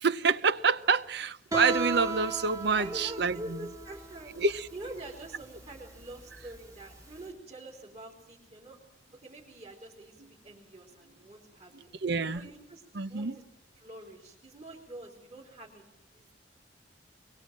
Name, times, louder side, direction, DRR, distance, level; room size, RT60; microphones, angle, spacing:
voice 1, 0.0-3.4 4.4-4.7 12.0-12.4 12.9-13.3, right 5 dB, 65° right, 0.8 m, -27 dB
Guitar, 1.5-7.2, right 3 dB, 20° right, 2.0 m, -37 dB
voice 2, 2.7-4.4 4.7-8.8 9.1-11.9 12.3-12.8 13.1-13.4 13.7-15.8 16.1-16.3, right 1 dB, 35° right, 4.2 m, -45 dB
23.0 x 23.0 x 7.6 m
head